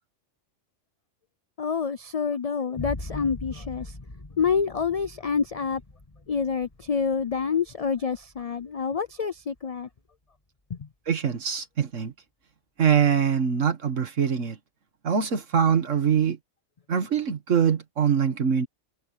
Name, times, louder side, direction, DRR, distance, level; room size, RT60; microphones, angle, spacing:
voice 1, 1.6-3.9 4.4-5.8 6.3-9.9 10.7-10.9, left 6 dB, 65° left, 0.3 m, -27 dB
sound 1, 2.8-10.2, left 2 dB, 25° left, 1.8 m, -41 dB
voice 2, 11.1-12.1 12.8-14.6 15.0-16.4 16.9-18.7, right 7 dB, 75° right, 1.9 m, -23 dB
omnidirectional pair, 1.3 m